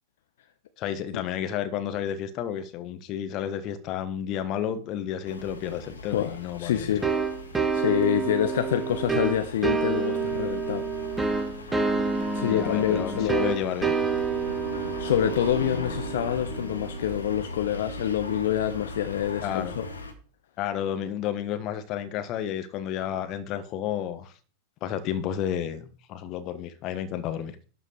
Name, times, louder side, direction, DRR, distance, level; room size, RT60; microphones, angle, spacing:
voice 1, 0.8-6.9 12.5-14.0 19.4-19.8 20.6-24.3 24.8-27.6, left 10 dB, 40° left, 1.5 m, -31 dB
sound 1, 5.2-20.1, left 1 dB, 75° left, 1.9 m, -39 dB
voice 2, 6.1-7.2 7.7-10.8 11.6-11.8 12.3-13.5 14.7-19.8, left 10 dB, 60° left, 1.0 m, -27 dB
sound 2, 7.0-17.5, right 5 dB, 10° right, 1.3 m, -29 dB
12.0 x 4.9 x 6.5 m
figure-of-eight pair, 90°, 0 cm